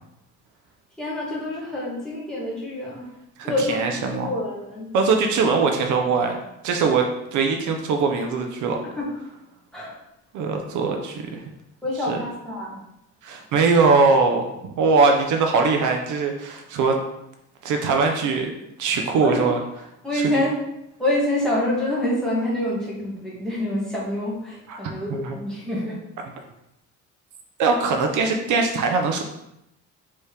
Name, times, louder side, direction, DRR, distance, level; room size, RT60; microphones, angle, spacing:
voice 1, 1.0-3.1 3.4-4.9 8.8-9.1 9.7-9.9 11.8-12.8 19.2-19.5 20.0-20.6 21.0-26.0, left 1 dB, ahead, -7 dB, 1.5 m, -26 dB
voice 2, 3.4-4.3 4.9-6.4 6.6-8.8 10.3-11.4 12.1-12.2 13.2-17.0 17.6-18.5 18.8-19.6 20.1-20.4 24.7-24.8 25.1-25.4 27.6-29.2, right 4 dB, 70° right, 3 dB, 0.6 m, -21 dB
4.5 x 3.0 x 3.3 m, 0.85 s
cardioid pair, 125°, 31 cm